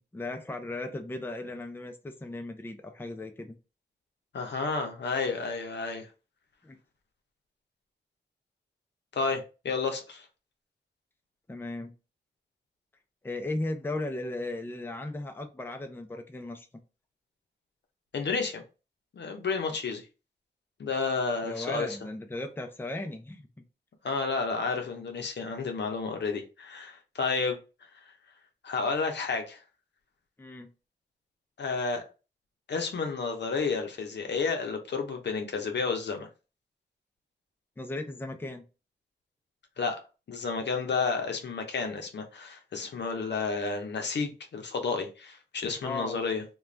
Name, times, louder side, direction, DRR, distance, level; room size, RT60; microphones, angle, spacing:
voice 1, 0.0-3.6 6.6-6.8 11.5-11.9 13.2-16.7 21.4-23.5 30.4-30.7 37.8-38.6 45.8-46.2, left 2 dB, 10° left, 0.5 m, -36 dB
voice 2, 4.3-6.1 9.1-10.3 18.1-18.6 19.1-20.1 20.8-22.0 24.0-27.6 28.6-29.6 31.6-32.0 32.7-36.3 39.8-40.0 40.3-46.4, left 4 dB, 75° left, 0.6 m, -31 dB
2.4 x 2.2 x 3.1 m
cardioid pair, 60°, 18 cm